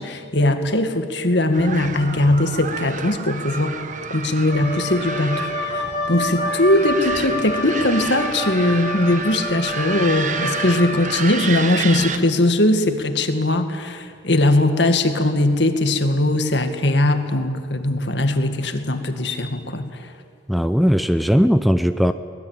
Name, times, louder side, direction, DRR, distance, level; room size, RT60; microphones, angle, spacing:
voice 1, 0.0-3.7 4.1-20.0, left 1 dB, 65° left, 7 dB, 2.1 m, -20 dB
sound 1, 1.5-12.2, right 5 dB, 40° right, 1.2 m, -30 dB
Wind instrument woodwind instrument, 4.5-11.2, left 1 dB, 45° left, 7.7 m, -28 dB
voice 2, 20.5-22.1, equal, ahead, 10 dB, 0.6 m, -18 dB
24.0 x 20.0 x 9.1 m, 2.2 s
head